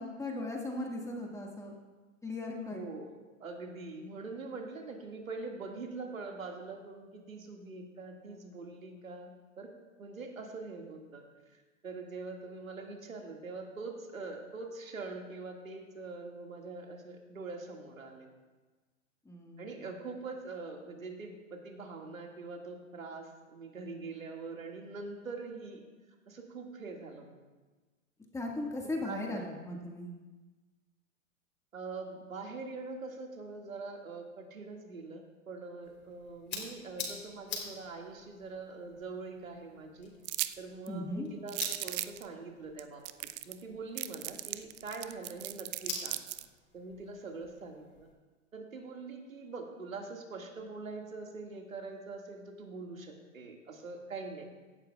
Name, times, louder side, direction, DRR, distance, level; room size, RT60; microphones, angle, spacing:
voice 1, 0.0-1.7 2.2-2.8 19.3-19.8 28.3-30.1 40.9-41.3, left 2 dB, 10° left, 0 dB, 1.9 m, -38 dB
voice 2, 2.7-9.3 9.6-9.7 10.0-11.6 11.8-18.3 19.6-25.8 26.3-27.4 29.0-29.5 31.7-40.1 40.6-46.2 46.7-48.1 48.5-54.4, right 3 dB, 90° right, 1 dB, 2.2 m, -43 dB
sound 1, 35.8-48.1, left 5 dB, 30° left, 3.8 m, -47 dB
sound 2, 40.2-40.5 40.9-41.0 41.5-42.2 42.8-42.9 43.0-43.6 44.0-46.4, right 17 dB, 35° right, 0.4 m, -37 dB
17.0 x 13.5 x 2.4 m, 1.3 s
hypercardioid pair, 110°, 39 cm